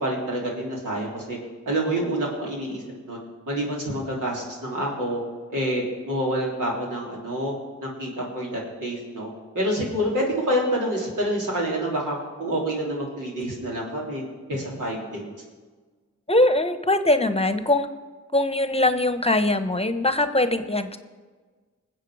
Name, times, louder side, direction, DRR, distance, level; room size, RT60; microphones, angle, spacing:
voice 1, 0.0-1.4 1.6-3.2 3.5-5.2 5.5-7.5 7.8-9.3 9.5-14.2 14.5-15.3, right 1 dB, 85° right, -3 dB, 3.2 m, -27 dB
voice 2, 16.3-17.9 18.3-21.0, left 1 dB, 20° left, 10 dB, 1.0 m, -21 dB
20.0 x 7.6 x 4.8 m, 1.4 s
cardioid pair, 40°, 30 cm